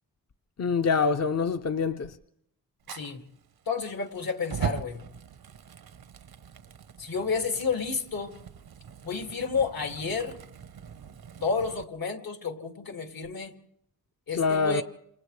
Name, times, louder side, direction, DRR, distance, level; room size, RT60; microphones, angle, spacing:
voice 1, 0.6-2.2 14.3-14.8, left 5 dB, 45° left, 0.7 m, -25 dB
Fire, 2.8-11.8, right 8 dB, 90° right, 1.0 m, -41 dB
voice 2, 2.9-3.2 3.7-5.0 7.0-8.3 9.0-10.4 11.4-13.5 14.3-14.8, left 5 dB, 75° left, 2.6 m, -31 dB
29.0 x 27.5 x 3.3 m
wide cardioid pair, 90°, 36 cm